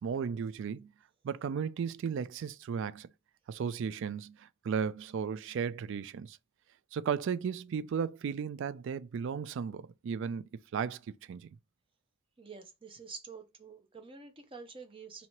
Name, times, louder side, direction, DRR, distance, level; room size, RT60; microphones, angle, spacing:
voice 1, 0.0-0.9 1.2-3.1 3.5-6.4 6.9-10.5 10.7-11.5, right 6 dB, 65° right, 0.3 m, -35 dB
voice 2, 12.4-15.3, right 5 dB, 25° right, 0.7 m, -48 dB
2.9 x 2.7 x 4.4 m
head